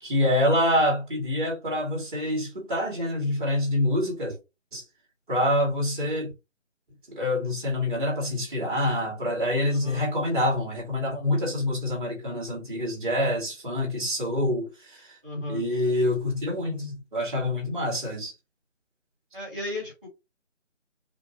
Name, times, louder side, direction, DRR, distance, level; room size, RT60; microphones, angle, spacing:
voice 1, 0.0-4.4 4.7-4.8 5.3-6.3 7.1-15.1 15.5-18.3, left 1 dB, 40° right, 2.2 m, -26 dB
voice 2, 9.7-10.1 15.2-15.7 19.3-20.1, left 1 dB, 5° right, 1.0 m, -35 dB
5.0 x 2.7 x 2.8 m
figure-of-eight pair, 160°, 38 cm